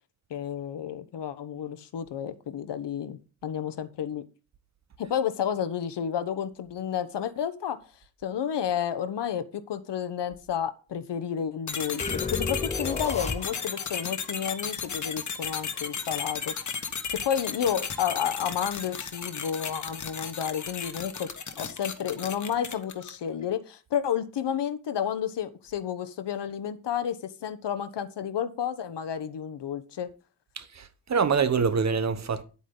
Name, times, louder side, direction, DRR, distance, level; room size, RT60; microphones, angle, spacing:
voice 1, 0.3-4.2 5.0-7.8 8.2-16.6 17.1-21.3 21.6-30.1, left 8 dB, 85° left, 1.1 m, -31 dB
sound 1, 11.7-23.3, left 6 dB, 45° left, 1.3 m, -35 dB
sound 2, 12.0-13.9, left 4 dB, 15° left, 0.5 m, -32 dB
voice 2, 30.6-32.4, right 5 dB, 40° right, 1.0 m, -25 dB
10.0 x 8.4 x 3.9 m
wide cardioid pair, 170°, 41 cm